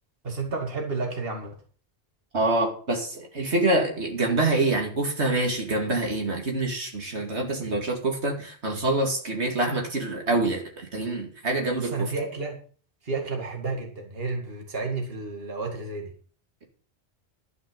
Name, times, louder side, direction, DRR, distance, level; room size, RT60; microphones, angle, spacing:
voice 1, 0.2-1.5 11.8-12.6 13.0-16.1, right 3 dB, 60° right, 2 dB, 2.5 m, -31 dB
voice 2, 2.3-11.9, right 2 dB, 80° right, 2 dB, 2.8 m, -26 dB
12.0 x 9.4 x 5.3 m, 0.43 s
omnidirectional pair, 1.1 m